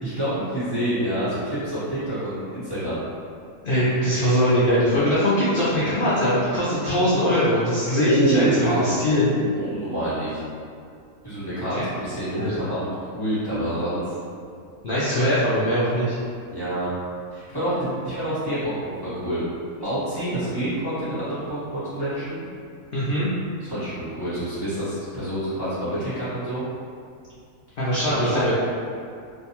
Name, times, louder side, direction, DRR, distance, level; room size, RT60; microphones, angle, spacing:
voice 1, 0.0-3.0 8.0-10.4 11.2-14.1 16.5-16.9 17.3-19.4 19.8-22.4 23.6-26.6 27.8-28.6, right 1 dB, 20° left, -14 dB, 0.9 m, -27 dB
voice 2, 3.6-9.3 11.8-11.9 12.4-12.6 14.8-16.2 22.9-23.3 27.8-28.6, equal, 90° left, -9 dB, 0.4 m, -21 dB
2.6 x 2.2 x 2.8 m, 2.3 s
omnidirectional pair, 1.6 m